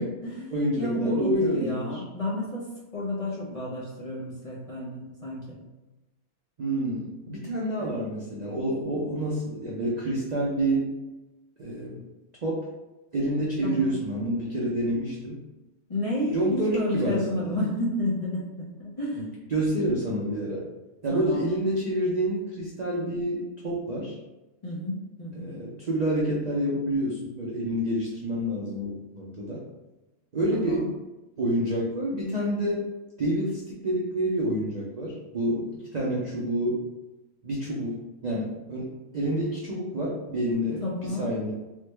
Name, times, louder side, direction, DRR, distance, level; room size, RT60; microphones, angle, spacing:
voice 1, 0.0-5.6 7.8-8.0 13.6-14.0 15.9-19.2 21.1-21.5 24.6-25.5 30.5-30.9 40.8-41.3, left 1 dB, 45° left, -7 dB, 0.5 m, -31 dB
voice 2, 0.5-2.0 6.6-10.9 11.6-12.0 12.4-12.7 13.1-15.4 16.3-17.5 19.2-19.3 19.5-20.6 21.0-24.1 25.3-29.6 30.3-30.9 31.4-32.9 33.2-36.8 37.4-41.5, right 1 dB, 75° right, -5 dB, 0.3 m, -28 dB
3.6 x 2.2 x 3.1 m, 1.0 s
omnidirectional pair, 1.5 m